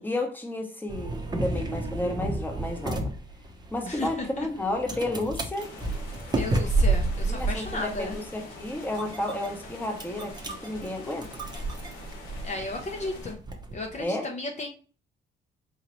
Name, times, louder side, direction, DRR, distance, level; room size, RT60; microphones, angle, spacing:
voice 1, 0.0-3.1 3.7-5.7 7.2-11.3 14.0-14.3, left 1 dB, 10° left, 0.9 m, -32 dB
sound 1, 0.9-14.0, right 2 dB, 20° right, 0.7 m, -31 dB
voice 2, 3.8-4.5 6.3-8.2 12.4-13.4 13.7-14.7, left 2 dB, 35° left, 0.7 m, -34 dB
sound 2, 5.5-13.3, left 3 dB, 90° left, 1.1 m, -45 dB
4.0 x 2.8 x 3.0 m
cardioid pair, 90°, 20 cm